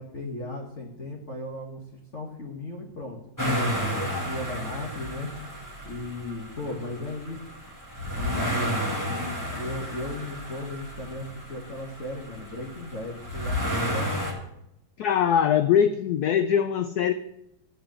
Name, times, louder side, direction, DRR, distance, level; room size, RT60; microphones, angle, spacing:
voice 1, 0.0-1.8 2.1-3.2 3.9-5.3 5.8-7.4 8.1-8.8 9.1-14.2, left 2 dB, 40° left, 0 dB, 1.6 m, -36 dB
sound 1, 3.4-14.3, equal, 10° left, 1.7 m, -32 dB
voice 2, 15.0-17.1, left 8 dB, 85° left, 10 dB, 0.8 m, -22 dB
11.0 x 5.3 x 7.6 m, 0.80 s
omnidirectional pair, 2.2 m